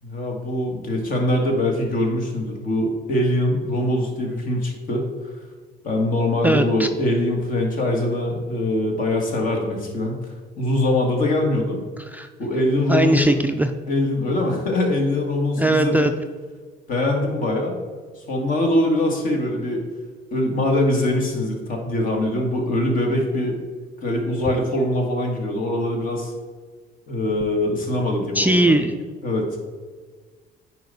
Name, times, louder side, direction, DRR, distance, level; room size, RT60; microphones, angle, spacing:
voice 1, 0.0-5.1 5.8-10.2 10.6-11.8 12.4-13.3 13.9-16.1 16.9-17.8 18.2-19.9 20.3-23.6 24.0-26.3 27.1-28.8 29.2-29.5, left 1 dB, 55° left, 2 dB, 1.9 m, -23 dB
voice 2, 6.4-6.9 12.0-12.3 12.9-13.7 15.6-16.1 28.3-28.9, right 1 dB, 10° right, 6 dB, 0.4 m, -19 dB
9.2 x 5.0 x 4.1 m, 1.5 s
cardioid pair, 110°, 17 cm